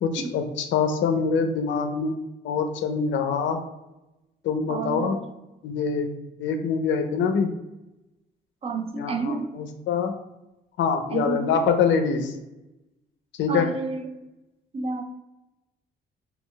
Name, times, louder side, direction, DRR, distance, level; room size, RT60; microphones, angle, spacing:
voice 1, 0.0-2.2 2.4-3.6 4.4-5.2 5.6-6.1 6.4-7.5 9.0-10.1 10.8-12.3 13.4-13.7, left 5 dB, 70° left, 6 dB, 0.4 m, -24 dB
voice 2, 4.7-5.2 8.6-9.5 11.1-11.5 13.5-14.1 14.7-15.0, right 4 dB, 30° right, 7 dB, 0.3 m, -29 dB
2.3 x 2.0 x 3.7 m, 0.96 s
cardioid pair, 90°, 20 cm